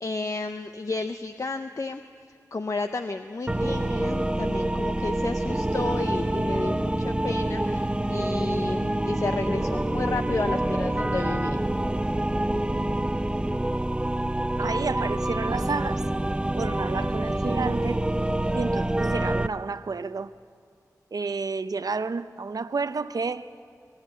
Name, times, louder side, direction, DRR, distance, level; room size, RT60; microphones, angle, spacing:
voice 1, 0.0-2.0 2.5-11.6, left 3 dB, 50° left, 0.7 m, -32 dB
sound 1, 3.5-19.5, right 1 dB, 15° right, 0.6 m, -26 dB
voice 2, 14.6-16.1 16.6-18.0 18.5-20.3 21.1-23.5, right 4 dB, 70° right, 0.7 m, -30 dB
23.0 x 16.5 x 8.3 m
cardioid pair, 50°, 7 cm